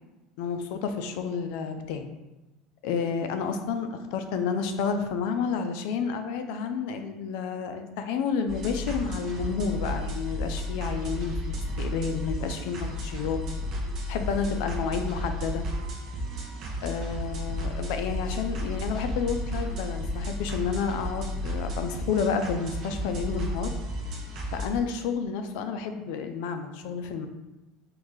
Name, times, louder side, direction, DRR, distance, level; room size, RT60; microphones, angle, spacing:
voice 1, 0.4-2.1 2.8-13.4 14.1-15.6 16.8-23.7 24.5-27.3, left 6 dB, 70° left, 7 dB, 0.5 m, -30 dB
sound 1, 8.5-24.7, equal, 45° right, 0.9 m, -33 dB
4.7 x 2.7 x 3.7 m, 1.0 s
supercardioid pair, 135°, 0 cm